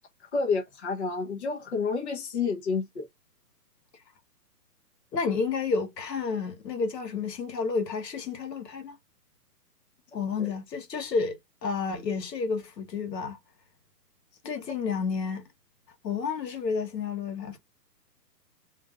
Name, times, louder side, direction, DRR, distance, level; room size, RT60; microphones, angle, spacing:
voice 1, 0.3-3.1 10.4-10.5, left 4 dB, 45° left, 0.7 m, -29 dB
voice 2, 5.1-9.0 10.1-13.4 14.4-15.5 16.0-17.6, left 5 dB, 85° left, 1.3 m, -30 dB
2.6 x 2.4 x 3.6 m
hypercardioid pair, 175°, 49 cm